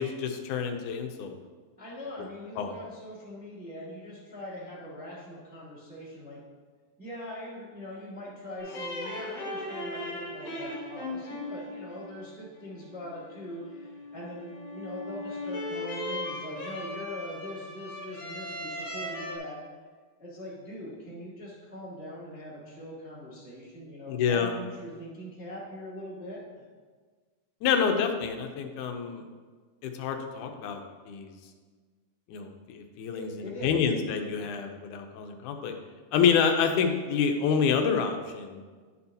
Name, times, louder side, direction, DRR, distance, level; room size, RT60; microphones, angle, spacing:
voice 1, 0.0-1.3 2.6-2.7 24.1-24.5 27.6-29.3 29.8-30.8 31.1-31.3 32.3-35.7 36.1-38.6, left 6 dB, 85° left, 5 dB, 2.2 m, -27 dB
voice 2, 1.8-6.4 7.0-19.6 20.2-26.4 33.1-33.9, left 1 dB, 5° right, -8 dB, 1.2 m, -42 dB
sound 1, 8.6-19.4, left 1 dB, 50° left, 1.7 m, -38 dB
10.0 x 7.0 x 2.7 m, 1.5 s
omnidirectional pair, 3.5 m